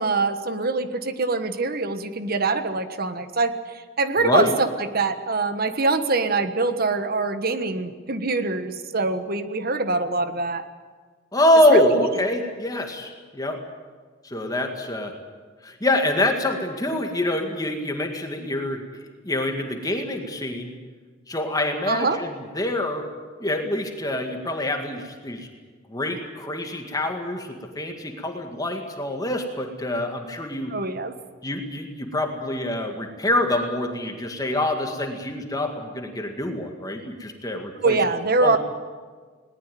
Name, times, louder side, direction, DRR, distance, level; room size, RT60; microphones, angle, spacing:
voice 1, 0.0-10.6 11.7-12.1 21.9-22.2 30.7-31.1 37.8-38.6, right 3 dB, 50° right, 10 dB, 1.4 m, -24 dB
voice 2, 4.2-4.6 11.3-13.6 14.2-15.1 15.6-19.0 19.2-20.8 21.3-23.1 23.4-25.5 25.9-30.7 31.4-38.0 38.4-38.6, left 1 dB, 20° left, 4 dB, 2.0 m, -25 dB
20.0 x 19.0 x 9.3 m, 1.5 s
head